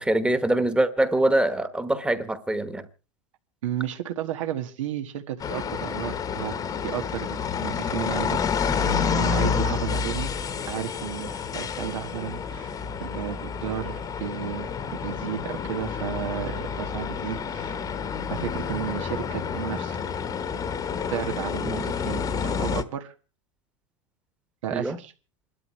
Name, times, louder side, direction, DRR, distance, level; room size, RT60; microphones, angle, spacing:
voice 1, 0.0-2.8 21.6-21.8 24.7-25.0, right 1 dB, 5° right, 1.2 m, -24 dB
voice 2, 3.6-6.5 6.8-8.4 9.1-10.3 10.7-17.8 18.3-20.0 21.1-23.1 24.6-25.1, right 11 dB, 90° right, 1.6 m, -33 dB
sound 1, 5.4-22.8, left 6 dB, 25° left, 1.1 m, -29 dB
27.5 x 12.5 x 3.1 m
supercardioid pair, 145°, 16 cm